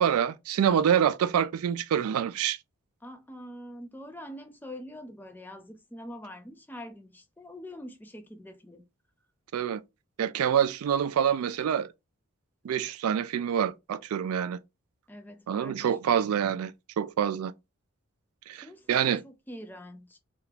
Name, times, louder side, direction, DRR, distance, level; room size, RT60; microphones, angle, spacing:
voice 1, 0.0-2.6 9.5-9.8 10.2-11.9 12.6-14.6 15.5-17.5 18.5-19.2, right 8 dB, 85° right, 0.3 m, -26 dB
voice 2, 3.0-8.8 15.1-15.9 18.5-20.2, equal, 10° left, 0.3 m, -44 dB
2.9 x 2.4 x 3.2 m
head